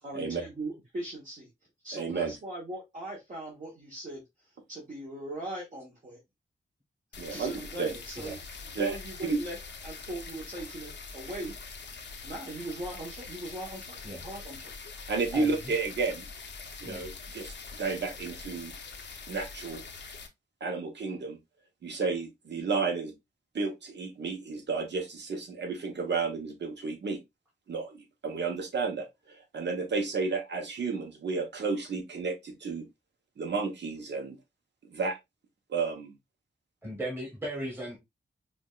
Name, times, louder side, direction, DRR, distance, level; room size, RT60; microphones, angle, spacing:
voice 1, 0.0-1.5 1.8-4.2 4.7-6.2 7.3-8.4 8.8-9.6 9.8-11.5 12.2-14.7, right 1 dB, 40° right, 1.2 m, -40 dB
voice 2, 1.9-2.3 7.2-7.5 7.8-7.9 8.7-9.4 15.1-16.3 16.8-18.7 19.3-19.8 20.6-21.4 21.8-23.1 23.5-27.2 27.7-32.9 33.4-34.4 34.8-35.2 35.7-36.1, right 4 dB, 65° right, 1.1 m, -32 dB
sound 1, 7.1-20.3, left 4 dB, 65° left, 0.8 m, -44 dB
voice 3, 15.3-15.7 16.8-17.1 36.8-38.0, right 1 dB, 10° right, 1.3 m, -38 dB
4.9 x 2.4 x 2.4 m
wide cardioid pair, 150°, 19 cm